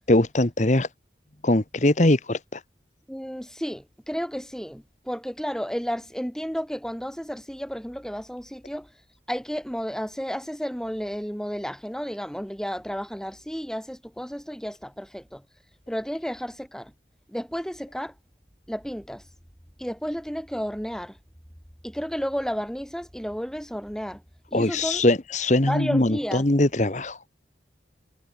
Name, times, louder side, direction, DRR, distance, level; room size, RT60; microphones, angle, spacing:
voice 1, 0.1-0.9 1.4-2.6 24.5-27.2, left 1 dB, 40° left, 1.3 m, -21 dB
voice 2, 3.1-8.9 9.3-15.4 15.9-16.9 17.3-18.1 18.7-19.2 19.8-21.2 21.8-24.2 24.5-25.0 25.6-26.5, equal, 5° left, 5.7 m, -32 dB
head